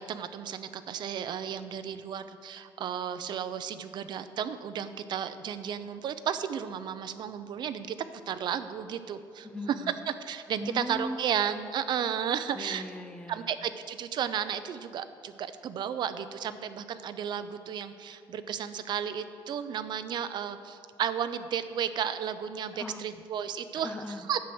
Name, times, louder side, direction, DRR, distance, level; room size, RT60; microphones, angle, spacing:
voice 1, 0.0-7.9 8.3-9.5 10.2-12.8 13.3-23.9 24.3-24.4, right 8 dB, 55° right, 11 dB, 0.6 m, -33 dB
voice 2, 9.4-10.0 10.6-11.2 12.5-13.5 22.8-23.0 23.8-24.2, left 1 dB, 10° left, 8 dB, 0.5 m, -38 dB
10.5 x 7.8 x 6.0 m, 2.6 s
cardioid pair, 165°, 9 cm